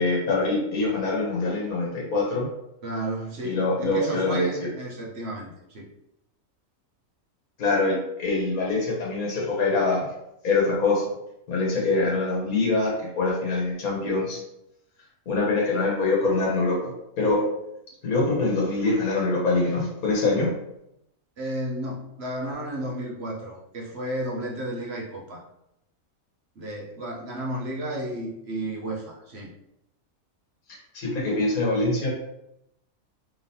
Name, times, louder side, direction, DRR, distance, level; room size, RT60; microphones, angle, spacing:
voice 1, 0.0-2.5 3.4-4.5 7.6-10.1 10.4-11.0 11.5-14.4 15.3-17.4 18.0-20.5 30.9-32.1, left 3 dB, 85° left, -3 dB, 1.6 m, -24 dB
voice 2, 2.8-5.8 21.4-25.4 26.6-29.5, right 1 dB, 55° right, -3 dB, 1.0 m, -32 dB
3.6 x 3.5 x 2.7 m, 0.83 s
omnidirectional pair, 1.5 m